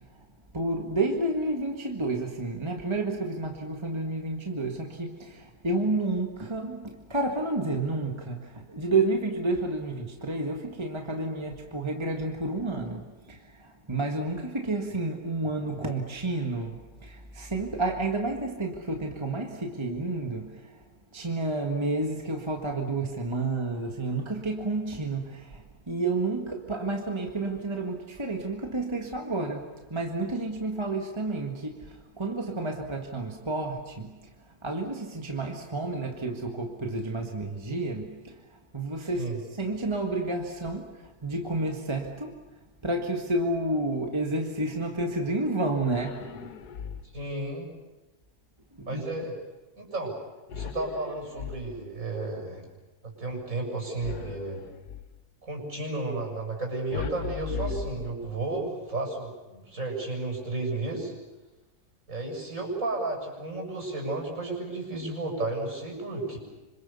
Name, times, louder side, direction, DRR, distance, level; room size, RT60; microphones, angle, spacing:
voice 1, 0.5-20.8 21.1-34.1 34.6-38.4 38.7-39.3 39.6-40.8 41.2-42.4 42.8-46.5 48.8-49.0, right 2 dB, 20° right, 2 dB, 1.8 m, -30 dB
sound 1, 45.8-47.3 50.5-52.1 54.0-55.2 56.9-58.6, left 6 dB, 80° left, 1.6 m, -38 dB
voice 2, 47.1-47.7 48.9-49.3 49.8-50.1 50.5-52.7 53.0-54.6 55.4-61.1 62.1-66.4, right 2 dB, 55° right, 1 dB, 7.7 m, -33 dB
26.5 x 26.5 x 7.0 m, 1.1 s
omnidirectional pair, 1.7 m